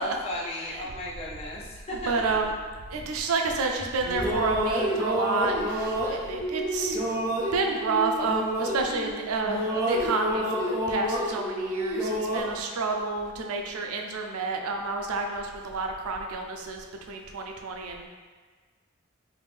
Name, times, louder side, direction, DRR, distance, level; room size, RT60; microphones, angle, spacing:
voice 1, 0.0-2.1, left 1 dB, 30° left, -6 dB, 0.6 m, -35 dB
voice 2, 2.1-2.5 2.9-7.0 7.5-18.1, right 3 dB, 90° right, 2 dB, 0.4 m, -29 dB
sound 1, 3.8-9.2 9.4-12.4, equal, 15° right, 0.5 m, -29 dB
3.4 x 2.6 x 3.3 m, 1.5 s
head